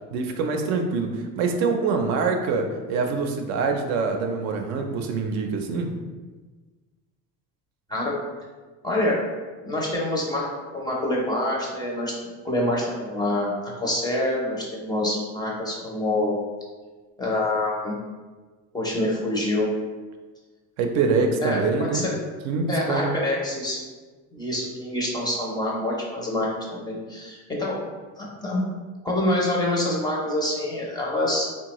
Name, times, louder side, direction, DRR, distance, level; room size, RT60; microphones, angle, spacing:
voice 1, 0.1-5.9 20.8-22.0 22.5-23.1, right 4 dB, 60° right, 4 dB, 0.4 m, -25 dB
voice 2, 8.8-9.2 9.6-10.5 10.7-12.1 12.4-13.5 13.8-16.3 17.2-17.9 18.7-19.7 21.4-22.1 22.7-23.8 24.3-27.8 28.2-28.6 29.0-31.5, left 1 dB, 15° left, -3 dB, 0.5 m, -26 dB
3.7 x 2.2 x 2.9 m, 1.3 s
cardioid pair, 145°, 31 cm